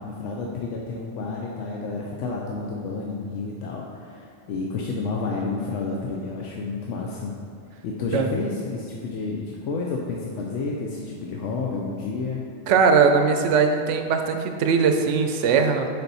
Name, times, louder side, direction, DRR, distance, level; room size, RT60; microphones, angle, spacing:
voice 1, 0.0-7.3 7.8-12.4, left 3 dB, 85° left, -2 dB, 1.0 m, -30 dB
voice 2, 12.7-15.9, right 5 dB, 90° right, 6 dB, 0.9 m, -20 dB
6.7 x 4.2 x 4.1 m, 2.3 s
omnidirectional pair, 1.2 m